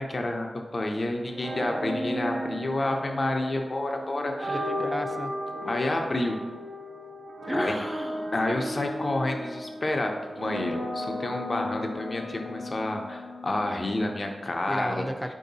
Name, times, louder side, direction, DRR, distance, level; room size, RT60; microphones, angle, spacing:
voice 1, 0.0-4.7 5.6-6.4 7.5-7.7 8.3-15.1, left 2 dB, 50° left, 3 dB, 0.6 m, -29 dB
sound 1, 1.3-14.2, equal, 70° right, 1.0 m, -35 dB
voice 2, 4.5-5.3 7.4-8.3 14.7-15.3, equal, ahead, 6 dB, 0.5 m, -33 dB
4.6 x 2.7 x 4.0 m, 1.3 s
cardioid pair, 40°, 0 cm